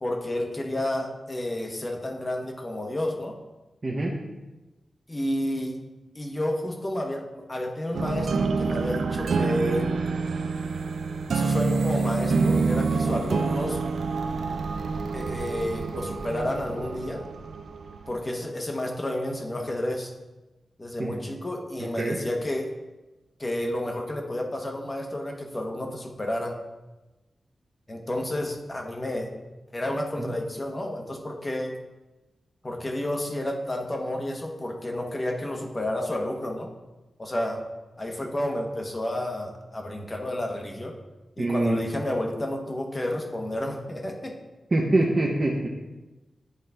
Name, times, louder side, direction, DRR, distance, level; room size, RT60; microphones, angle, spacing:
voice 1, 0.0-3.3 5.1-5.8 6.1-10.0 11.3-13.8 15.1-17.2 18.1-20.1 20.8-22.7 23.4-26.6 27.9-29.3 29.7-31.8 32.6-36.7 37.2-37.6 38.0-40.9 41.4-44.3, left 1 dB, 20° left, 1 dB, 0.9 m, -30 dB
voice 2, 3.8-4.1 21.0-21.2 21.8-22.2 30.2-30.3 41.4-41.8 44.7-45.7, right 2 dB, 35° right, -4 dB, 0.8 m, -25 dB
sound 1, 7.9-18.2, right 4 dB, 80° right, 0.4 m, -27 dB
10.5 x 4.0 x 3.4 m, 1.1 s
wide cardioid pair, 160°, 0 cm